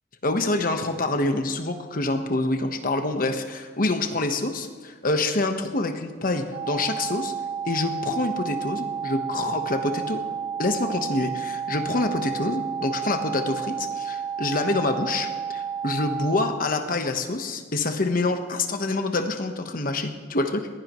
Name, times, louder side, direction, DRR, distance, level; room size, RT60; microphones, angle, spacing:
voice 1, 0.2-7.3 7.7-10.2 10.6-20.7, left 2 dB, 50° left, 6 dB, 1.3 m, -26 dB
sound 1, 6.5-16.5, right 7 dB, 40° right, 1.5 m, -31 dB
21.0 x 16.0 x 3.2 m, 1.5 s
head